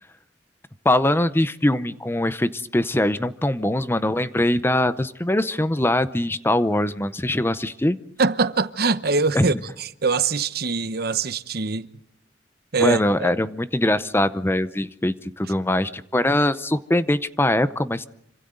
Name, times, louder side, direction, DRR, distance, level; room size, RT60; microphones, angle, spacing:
voice 1, 0.8-8.0 9.3-9.6 12.8-18.1, left 1 dB, 15° left, 0.7 m, -22 dB
voice 2, 8.2-9.5 9.8-11.9 12.7-13.3, right 4 dB, 60° right, 1.0 m, -23 dB
27.0 x 26.0 x 3.9 m
head